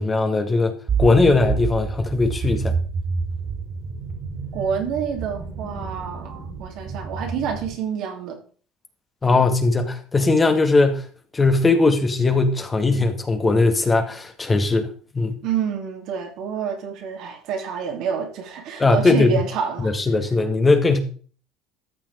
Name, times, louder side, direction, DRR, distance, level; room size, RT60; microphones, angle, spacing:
voice 1, 0.0-2.8 9.2-11.0 11.3-14.9 15.1-15.4 18.8-19.3 19.8-21.0, left 3 dB, 25° left, 2.1 m, -19 dB
sound 1, 0.9-7.8, right 5 dB, 40° right, 3.4 m, -29 dB
voice 2, 4.5-8.4 15.4-19.9, right 7 dB, 65° right, 3.3 m, -28 dB
14.0 x 6.0 x 5.1 m
hypercardioid pair, 80°, 0 cm